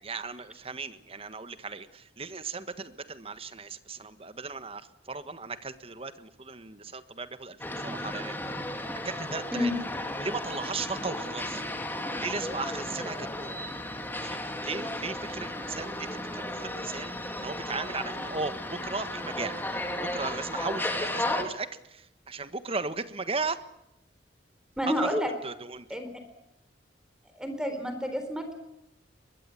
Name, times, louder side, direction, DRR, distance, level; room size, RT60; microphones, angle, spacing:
voice 1, 0.0-8.6 9.0-9.7 10.2-11.6 12.2-13.6 14.1-17.1 17.4-19.6 20.0-23.6 24.9-26.0, right 4 dB, 30° right, 11 dB, 1.4 m, -36 dB
sound 1, 7.6-21.4, left 1 dB, 10° left, 2.6 m, -34 dB
voice 2, 24.8-25.3 25.9-26.1 27.4-28.6, equal, 5° right, 7 dB, 3.8 m, -29 dB
23.0 x 21.5 x 8.4 m, 0.85 s
head